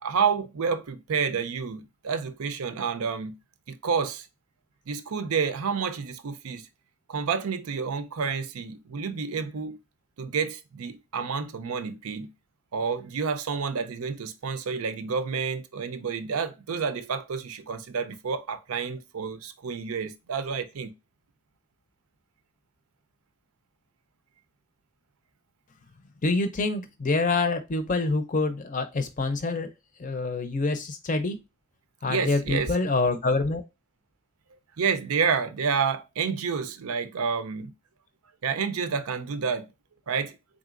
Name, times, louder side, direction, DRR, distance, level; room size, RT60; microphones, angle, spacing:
voice 1, 0.0-3.4 3.7-4.3 4.9-6.7 7.1-9.8 10.2-12.3 12.7-20.9 32.1-32.7 34.8-37.7 38.4-39.7 40.1-40.4, right 6 dB, 85° right, 0.5 m, -29 dB
voice 2, 26.2-29.7 30.0-31.4 32.0-33.6, left 3 dB, 35° left, 0.5 m, -26 dB
3.9 x 3.6 x 2.5 m
head